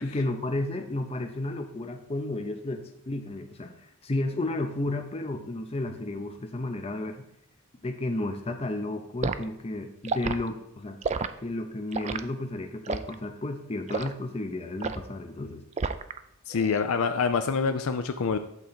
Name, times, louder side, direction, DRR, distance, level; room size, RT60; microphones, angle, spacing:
voice 1, 0.0-7.2 7.8-11.0 11.4-15.6, left 2 dB, 25° left, 5 dB, 0.6 m, -32 dB
Liquid, 9.2-9.4 10.0-10.4 11.0-11.3 11.9-12.2 12.9-13.1 13.9-14.1 14.8-15.1 15.8-16.2 16.5-16.8, right 4 dB, 30° right, 0.4 m, -30 dB
voice 2, 16.5-18.4, left 5 dB, 70° left, 8 dB, 0.5 m, -26 dB
8.3 x 3.8 x 6.8 m, 0.78 s
head